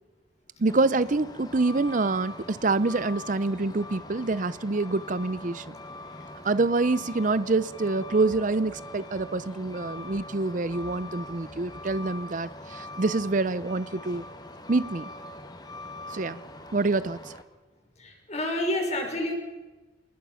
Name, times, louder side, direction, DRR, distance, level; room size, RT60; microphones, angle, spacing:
voice 1, 0.6-5.7 6.4-14.2 14.7-15.1 16.1-16.4 16.7-17.2, right 3 dB, 45° right, 0.6 m, -26 dB
Truck, 0.7-17.4, left 1 dB, 20° left, 1.9 m, -42 dB
voice 2, 18.0-19.3, left 1 dB, 35° left, 5.8 m, -29 dB
27.5 x 21.0 x 5.8 m
head